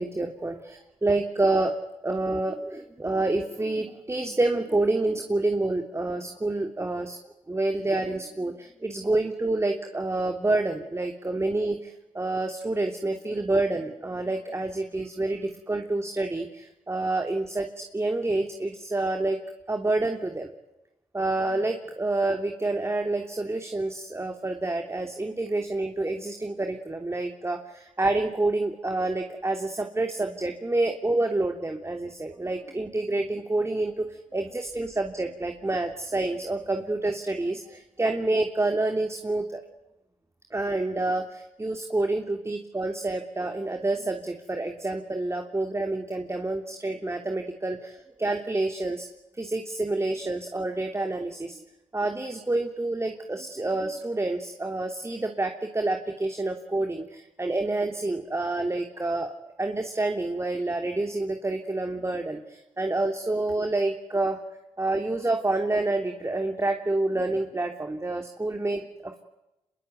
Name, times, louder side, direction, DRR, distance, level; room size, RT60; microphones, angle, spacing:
voice 1, 0.0-1.7 2.0-7.2 7.5-19.4 19.7-20.5 21.1-39.6 40.5-49.1 49.3-51.6 51.9-59.3 59.6-64.4 64.8-69.2, right 2 dB, 20° right, 4 dB, 3.1 m, -28 dB
26.0 x 22.5 x 9.4 m, 0.97 s
supercardioid pair, 55°, 13 cm